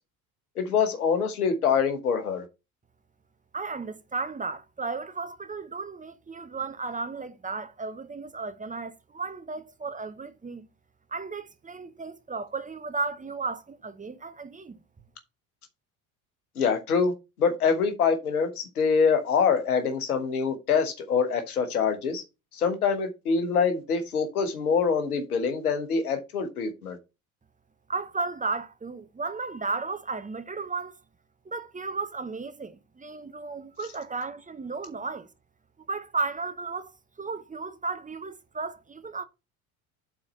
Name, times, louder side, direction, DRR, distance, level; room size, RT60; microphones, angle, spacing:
voice 1, 0.6-2.4 16.6-17.1 17.4-22.2 22.5-27.0, left 6 dB, 85° left, 1.3 m, -25 dB
voice 2, 3.5-10.7 11.1-14.8 27.9-31.0 31.4-35.3 35.9-36.9 37.2-39.2, right 4 dB, 20° right, 0.9 m, -34 dB
6.3 x 4.2 x 5.3 m
hypercardioid pair, 60°, 43 cm